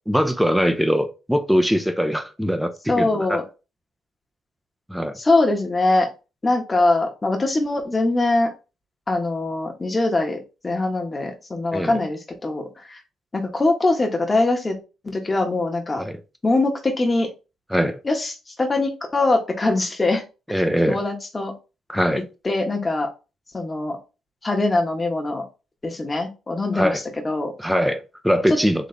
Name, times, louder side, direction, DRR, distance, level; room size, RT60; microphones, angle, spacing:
voice 1, 0.1-3.4 4.9-5.2 11.7-12.0 16.0-16.2 17.7-18.0 20.5-21.0 21.9-22.2 26.7-27.0 27.6-28.9, equal, ahead, 0.7 m, -22 dB
voice 2, 2.9-3.4 5.2-6.1 6.4-8.5 9.1-13.0 13.3-14.8 15.0-16.0 16.4-17.3 18.0-20.2 20.9-21.5 22.4-23.1 23.5-24.0 24.4-25.4 25.8-27.5 28.5-28.6, left 2 dB, 25° left, 1.3 m, -22 dB
4.2 x 3.3 x 3.3 m
cardioid pair, 90°, 0 cm